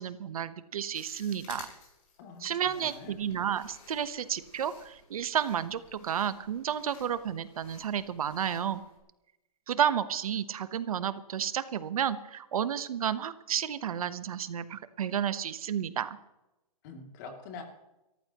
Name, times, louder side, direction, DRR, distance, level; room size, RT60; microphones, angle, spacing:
voice 1, 0.0-1.7 2.4-8.8 9.7-16.2, right 9 dB, 65° right, 13 dB, 1.0 m, -31 dB
apple eating, 0.9-9.0, left 5 dB, 55° left, 6.8 m, -54 dB
voice 2, 2.2-3.1 16.8-17.6, left 4 dB, 30° left, 3 dB, 2.6 m, -45 dB
25.0 x 14.0 x 3.0 m, 0.95 s
hypercardioid pair, 170°, 19 cm